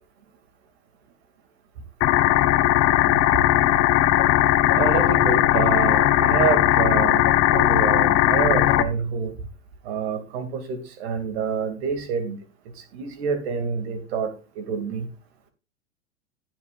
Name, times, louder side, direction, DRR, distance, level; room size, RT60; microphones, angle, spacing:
sound 1, 2.0-8.8, left 14 dB, 40° left, 1.4 m, -18 dB
voice 1, 4.8-9.3 9.8-12.4 12.8-15.1, right 6 dB, 65° right, 8 dB, 2.5 m, -27 dB
16.5 x 7.4 x 2.5 m, 0.32 s
hypercardioid pair, 110°, 35 cm